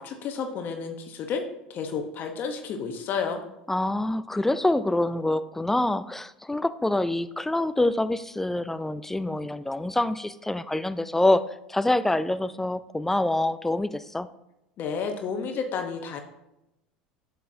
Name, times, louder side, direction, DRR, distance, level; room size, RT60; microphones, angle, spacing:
voice 1, 0.0-1.4 1.7-3.4 14.8-16.2, left 6 dB, 50° left, 5 dB, 1.0 m, -31 dB
voice 2, 3.7-11.4 11.7-14.3, left 1 dB, 5° left, 14 dB, 0.5 m, -26 dB
8.3 x 7.8 x 2.8 m, 0.89 s
hypercardioid pair, 80°, 4 cm